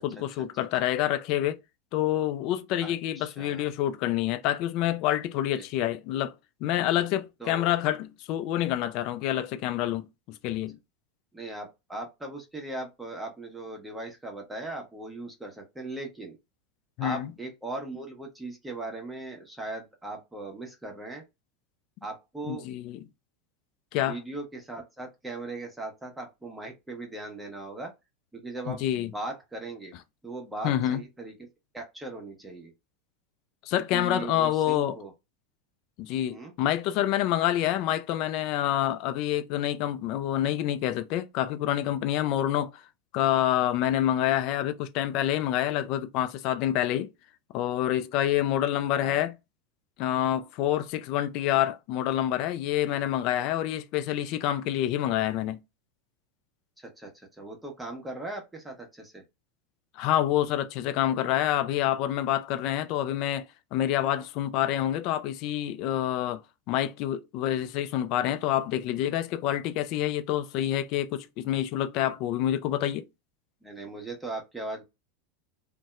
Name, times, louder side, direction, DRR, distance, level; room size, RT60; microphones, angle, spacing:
voice 1, 0.0-1.6 1.9-6.3 6.6-10.8 17.0-17.3 22.5-23.0 23.9-24.2 28.7-29.1 30.6-31.0 33.6-35.0 36.0-42.8 43.1-47.1 47.5-49.3 50.0-55.6 60.0-66.4 66.7-73.1, left 12 dB, 55° left, 0.3 m, -27 dB
voice 2, 2.8-3.7 5.5-5.6 7.4-7.7 11.3-16.4 17.0-21.2 22.0-22.7 24.0-27.9 28.3-29.9 30.2-31.3 31.7-32.7 33.9-35.1 36.3-36.5 49.0-49.2 56.8-59.2 73.6-74.8, right 2 dB, 10° right, 0.8 m, -39 dB
2.7 x 2.1 x 2.2 m
hypercardioid pair, 90°, 0 cm